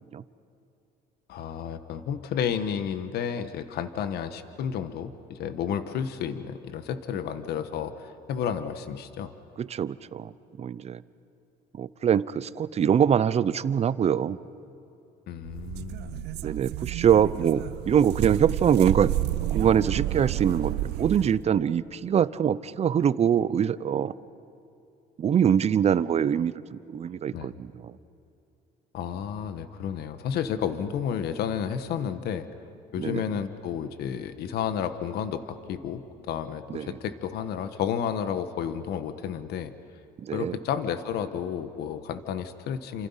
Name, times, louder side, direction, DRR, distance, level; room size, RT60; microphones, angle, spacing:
voice 1, 1.3-9.3 15.3-16.3 27.3-27.5 28.9-32.5 32.9-39.7 40.3-43.1, left 8 dB, 75° left, 10 dB, 1.4 m, -31 dB
voice 2, 9.6-10.3 10.6-11.0 11.8-14.4 16.4-19.1 19.5-24.1 25.2-28.0 33.0-33.2 36.7-37.0 40.2-40.6, right 8 dB, 40° right, 17 dB, 0.7 m, -24 dB
sound 1, 15.4-21.4, right 15 dB, 80° right, 0.7 m, -30 dB
29.5 x 27.5 x 5.7 m, 2.8 s
cardioid pair, 110°, 17 cm